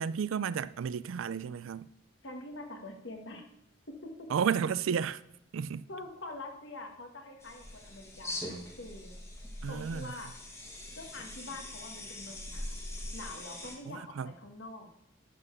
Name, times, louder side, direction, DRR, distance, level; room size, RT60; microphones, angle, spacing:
voice 1, 0.0-1.9 4.3-5.2 5.5-5.8 9.6-10.1 13.9-14.3, right 7 dB, 70° right, 0.4 m, -32 dB
voice 2, 2.2-3.4 3.9-4.3 5.9-9.1 9.7-10.3 10.9-12.8 13.1-14.9, left 2 dB, 60° left, 1.5 m, -45 dB
sound 1, 7.4-13.7, left 1 dB, 15° left, 1.5 m, -42 dB
11.0 x 4.1 x 6.6 m
head